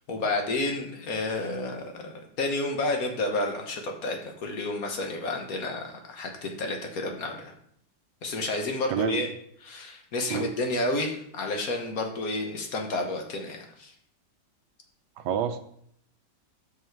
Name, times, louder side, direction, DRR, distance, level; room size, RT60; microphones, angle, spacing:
voice 1, 0.1-2.1 2.4-7.5 8.2-9.3 9.6-13.9, left 2 dB, 55° left, 3 dB, 1.3 m, -30 dB
voice 2, 8.9-9.2 10.3-10.5 15.2-15.6, right 8 dB, 75° right, 9 dB, 1.2 m, -27 dB
6.2 x 5.5 x 4.5 m, 0.68 s
omnidirectional pair, 2.0 m